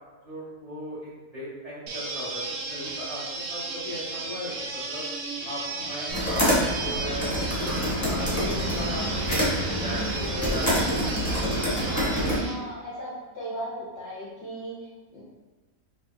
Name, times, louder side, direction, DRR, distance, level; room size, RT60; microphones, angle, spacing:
voice 1, 0.2-2.4 2.7-3.2 3.5-5.0 5.4-9.1 9.6-11.0, equal, 25° right, -10 dB, 1.4 m, -37 dB
sound 1, 1.9-12.5, right 3 dB, 65° right, 0.7 m, -34 dB
sound 2, 6.1-12.4, equal, 15° left, 0.8 m, -26 dB
voice 2, 12.4-14.8 15.1-15.2, right 1 dB, 55° left, -7 dB, 0.8 m, -37 dB
4.0 x 2.6 x 2.6 m, 1.3 s
omnidirectional pair, 1.6 m